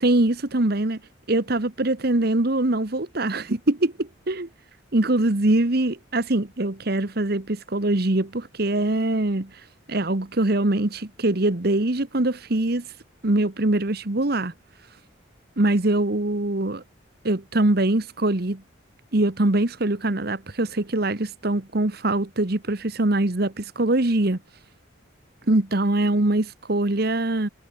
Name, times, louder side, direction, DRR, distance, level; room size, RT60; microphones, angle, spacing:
voice 1, 0.0-1.0 1.3-4.5 4.9-9.5 9.9-12.8 13.2-14.5 15.6-16.8 17.2-18.6 19.1-24.4 25.5-27.5, right 2 dB, 55° right, 1.4 m, -23 dB
head